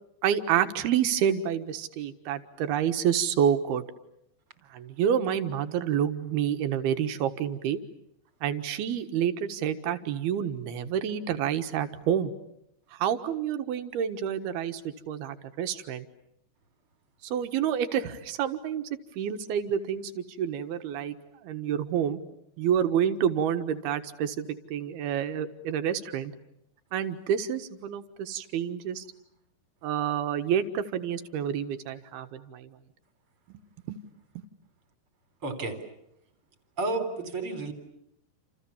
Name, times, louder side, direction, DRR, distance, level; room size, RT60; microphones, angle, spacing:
voice 1, 0.2-3.8 4.7-7.8 8.4-12.3 12.9-16.1 17.2-18.9 19.2-21.2 21.4-22.2 22.6-26.3 26.9-29.0 29.8-32.7 33.5-33.6 33.9-34.0, right 9 dB, 85° right, 8 dB, 3.4 m, -28 dB
voice 2, 35.4-35.8 36.8-37.7, right 2 dB, 35° right, 8 dB, 4.3 m, -31 dB
29.5 x 28.5 x 7.2 m, 0.79 s
omnidirectional pair, 4.3 m